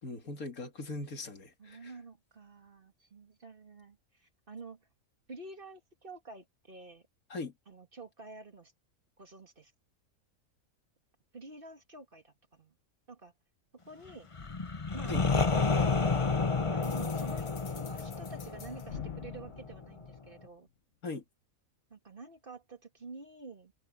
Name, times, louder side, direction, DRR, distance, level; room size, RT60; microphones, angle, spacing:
voice 1, 0.0-1.9 7.3-7.5 15.1-15.2 21.0-21.2, left 3 dB, 85° left, 2.8 m, -40 dB
voice 2, 1.6-4.9 5.3-7.0 7.7-8.7 9.2-9.7 11.3-12.7 13.1-13.3 13.9-14.3 14.9-15.2 15.8-16.3 16.7-20.7 21.9-23.7, right 3 dB, 40° right, 2.4 m, -49 dB
sound 1, 14.3-20.1, left 4 dB, 25° left, 1.0 m, -30 dB
sound 2, 16.8-20.7, left 7 dB, 60° left, 1.5 m, -48 dB
omnidirectional pair, 1.5 m